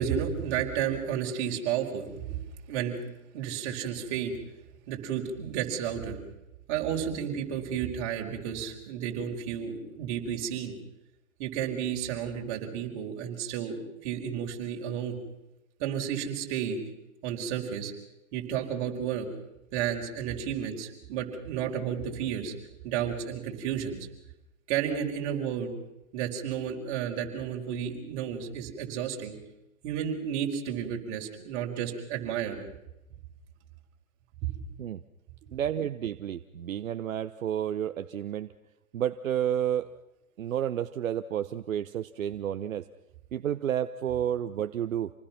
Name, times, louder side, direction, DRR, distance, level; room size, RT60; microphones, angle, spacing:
voice 1, 0.0-2.4 2.7-3.0 3.3-4.4 4.9-6.2 6.7-10.7 11.4-15.2 15.8-16.8 17.2-17.9 18.3-19.3 19.7-22.5 22.8-24.0 24.7-25.7 26.1-29.4 29.8-32.6 34.4-34.5, right 8 dB, 35° right, 2 dB, 4.9 m, -32 dB
voice 2, 35.5-38.5 38.9-39.9 40.4-42.9 43.3-45.1, right 10 dB, 70° right, 10 dB, 1.1 m, -31 dB
28.0 x 20.0 x 6.0 m, 0.92 s
hypercardioid pair, 135°, 42 cm